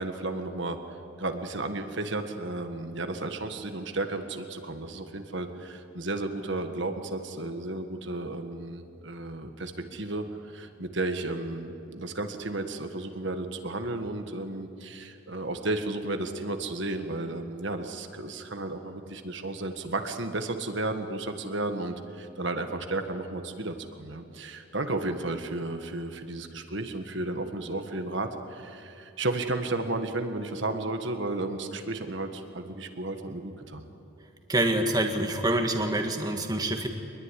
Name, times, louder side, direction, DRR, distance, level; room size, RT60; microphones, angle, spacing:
voice 1, 0.0-33.8, right 2 dB, 55° right, 6 dB, 1.6 m, -33 dB
voice 2, 34.5-36.9, right 1 dB, 20° right, 4 dB, 1.7 m, -26 dB
24.0 x 21.0 x 9.9 m, 2.6 s
head